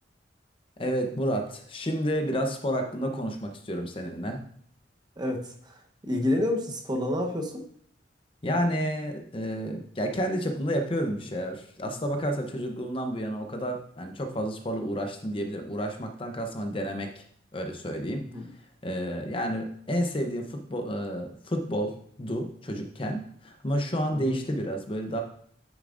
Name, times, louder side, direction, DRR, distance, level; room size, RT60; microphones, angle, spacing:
voice 1, 0.8-4.4 8.4-17.2 17.5-18.2 18.8-21.9 22.2-25.2, equal, 30° left, 4 dB, 0.8 m, -30 dB
voice 2, 5.2-5.7 6.1-7.6 18.3-18.5 24.1-24.3, left 1 dB, 25° right, 2 dB, 1.0 m, -29 dB
9.4 x 7.1 x 2.5 m, 0.63 s
head